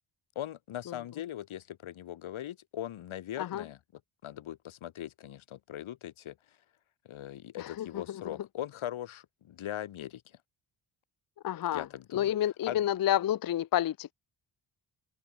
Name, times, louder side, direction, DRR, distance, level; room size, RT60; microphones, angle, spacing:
voice 1, 0.4-3.8 4.2-6.4 7.1-10.2 11.7-12.3 12.6-12.8, left 12 dB, 90° left, 2.0 m, -40 dB
voice 2, 7.6-8.3 11.4-11.8 12.1-14.1, left 11 dB, 50° left, 0.6 m, -30 dB
wide cardioid pair, 165°, 47 cm